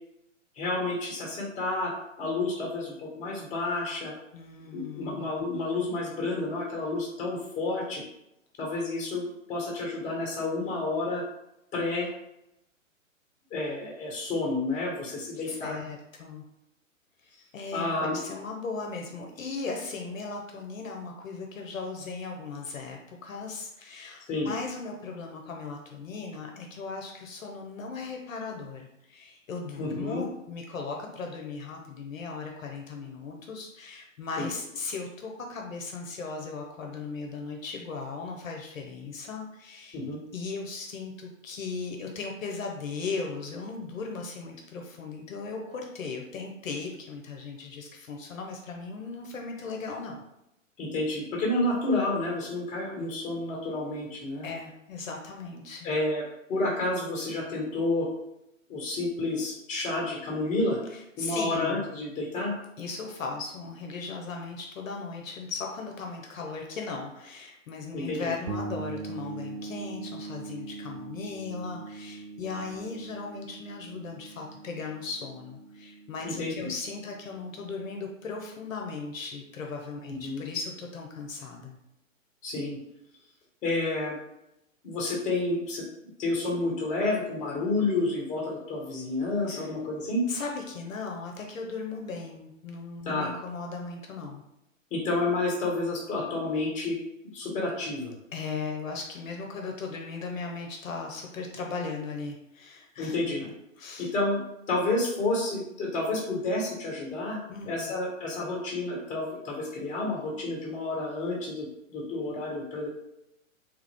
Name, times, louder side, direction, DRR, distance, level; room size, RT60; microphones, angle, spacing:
voice 1, 0.5-1.9 2.2-4.1 4.7-8.0 8.6-11.2 11.7-12.1 13.5-15.8 17.7-18.2 24.3-24.5 29.8-30.2 34.4-34.5 39.9-40.2 50.8-54.5 55.8-56.2 56.5-58.1 58.7-60.8 61.2-62.5 67.9-68.3 76.2-76.5 80.0-80.4 82.4-82.8 83.6-84.2 84.8-85.8 86.2-90.2 93.0-93.3 94.9-97.0 97.3-98.1 103.0-103.4 104.0-104.4 104.7-107.4 107.7-112.9, left 2 dB, 20° left, -2 dB, 1.3 m, -30 dB
voice 2, 4.3-5.3 15.3-16.4 17.2-40.0 40.3-50.2 54.4-55.9 60.9-61.9 62.8-81.8 89.5-89.7 90.3-94.4 98.3-103.5 103.8-104.1 107.5-107.9, left 4 dB, 75° left, 1 dB, 0.8 m, -37 dB
sound 1, 68.5-78.1, right 3 dB, 50° right, 0.5 m, -42 dB
3.3 x 2.4 x 3.4 m, 0.85 s
hypercardioid pair, 125°, 40 cm